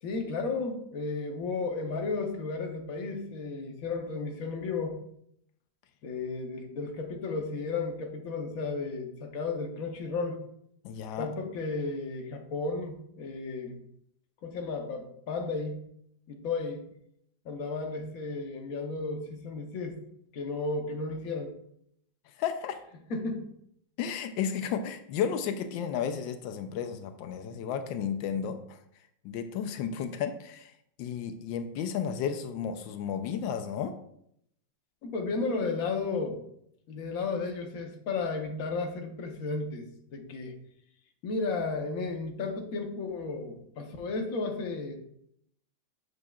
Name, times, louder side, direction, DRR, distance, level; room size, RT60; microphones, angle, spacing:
voice 1, 0.0-5.0 6.0-10.4 11.2-13.8 14.4-15.8 16.3-16.8 17.4-20.0 20.3-21.5 23.1-23.4 35.0-36.4 36.9-39.8 40.1-40.5 41.2-45.0, left 3 dB, 55° left, 3 dB, 1.3 m, -33 dB
voice 2, 10.8-11.3 22.4-22.8 24.0-28.8 29.2-30.7 31.0-33.9, left 8 dB, 90° left, 8 dB, 1.3 m, -33 dB
7.8 x 6.5 x 2.3 m, 0.72 s
omnidirectional pair, 2.0 m